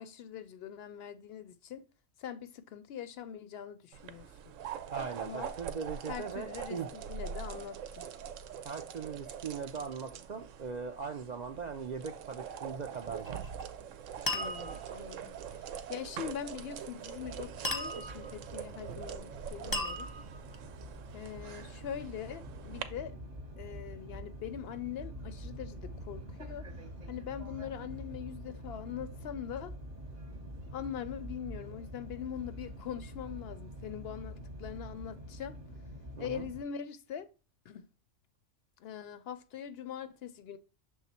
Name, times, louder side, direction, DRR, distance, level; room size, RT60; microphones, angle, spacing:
voice 1, 0.0-1.9 2.2-4.3 5.2-5.5 6.1-8.1 14.3-20.1 21.1-23.2 23.6-26.6 27.1-29.8 30.7-35.5 36.2-37.3 37.7-37.9 38.8-40.6, left 9 dB, 65° left, 0.7 m, -42 dB
sound 1, 3.9-22.8, right 8 dB, 85° right, 1.0 m, -43 dB
voice 2, 4.9-6.9 8.6-13.4 36.2-36.5, right 5 dB, 65° right, 0.4 m, -40 dB
sound 2, 13.2-13.6 14.3-15.0 17.6-18.4 19.7-20.5, left 1 dB, 20° left, 0.6 m, -36 dB
sound 3, 17.2-36.6, equal, 35° right, 1.0 m, -46 dB
6.4 x 3.5 x 4.2 m
omnidirectional pair, 1.3 m